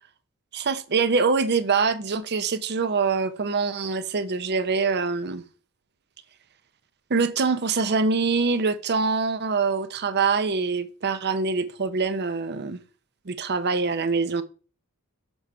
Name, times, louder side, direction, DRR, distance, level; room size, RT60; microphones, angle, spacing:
voice 1, 0.5-5.4 7.1-12.8 13.3-14.4, right 4 dB, 50° right, 0.7 m, -24 dB
7.1 x 3.1 x 5.5 m
head